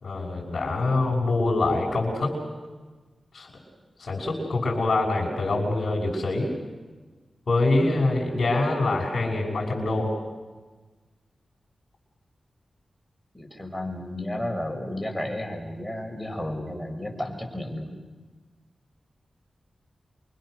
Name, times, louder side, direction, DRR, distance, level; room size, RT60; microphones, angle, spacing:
voice 1, 0.0-2.4 3.3-3.5 4.0-6.5 7.5-10.1, left 2 dB, 65° left, -5 dB, 5.9 m, -25 dB
voice 2, 13.3-17.9, left 1 dB, 10° left, 2 dB, 6.4 m, -32 dB
29.0 x 24.0 x 6.5 m, 1.3 s
cardioid pair, 50°, 0 cm